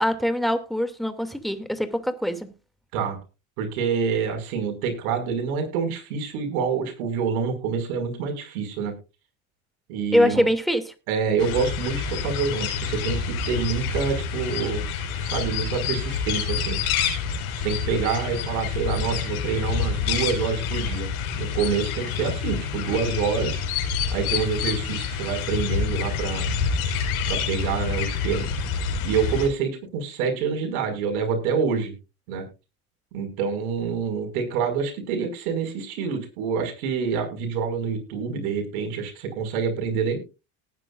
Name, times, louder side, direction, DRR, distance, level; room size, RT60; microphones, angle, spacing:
voice 1, 0.0-2.5 10.1-10.9, equal, ahead, 2.5 m, -23 dB
voice 2, 3.6-8.9 9.9-10.5 11.1-14.9 15.2-16.8 17.6-21.1 21.3-23.6 24.1-26.5 27.3-28.5 29.0-31.9 32.3-32.4 33.1-40.2, right 6 dB, 80° right, 5.7 m, -27 dB
sound 1, 11.4-29.5, left 6 dB, 85° left, 5.3 m, -27 dB
19.0 x 10.0 x 2.5 m
supercardioid pair, 85°, 42 cm